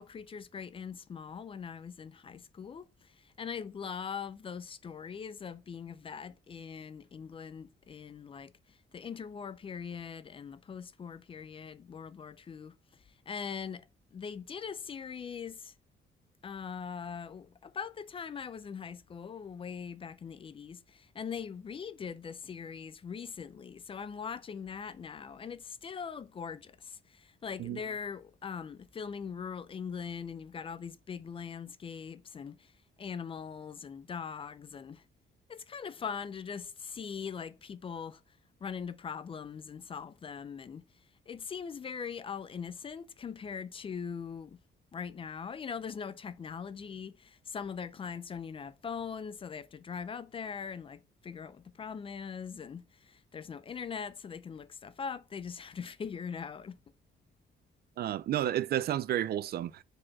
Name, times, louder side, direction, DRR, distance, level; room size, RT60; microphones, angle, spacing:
voice 1, 0.0-12.8 13.3-15.7 16.4-32.7 33.0-35.0 35.5-38.2 38.6-40.8 41.3-44.6 44.9-56.8, left 6 dB, 30° left, 0.4 m, -41 dB
voice 2, 58.0-59.8, right 11 dB, 55° right, 0.4 m, -31 dB
4.9 x 4.3 x 5.8 m
cardioid pair, 145°, 19 cm